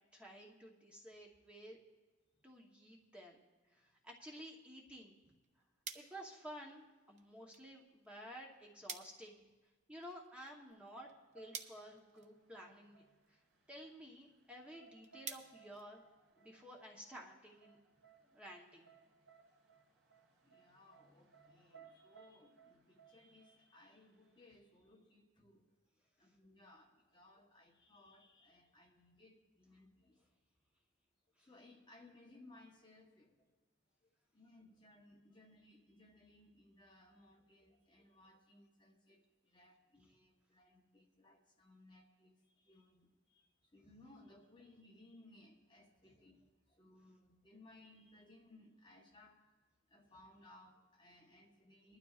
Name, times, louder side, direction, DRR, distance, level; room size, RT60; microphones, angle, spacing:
voice 1, 0.1-1.8 2.4-3.4 3.7-5.1 5.9-9.4 9.9-13.0 13.3-13.4 13.7-16.0 16.4-17.8 18.2-18.9 31.4-31.5, equal, 5° right, -2 dB, 1.0 m, -53 dB
sound 1, 5.2-16.6, right 6 dB, 35° right, 0.6 m, -55 dB
sound 2, 10.7-24.6, right 6 dB, 65° right, 2.8 m, -66 dB
voice 2, 20.4-25.7 26.2-30.3 31.4-33.6 34.0-49.6 49.9-52.0, left 2 dB, 20° left, 1 dB, 1.0 m, -63 dB
21.0 x 12.0 x 2.4 m, 1.3 s
head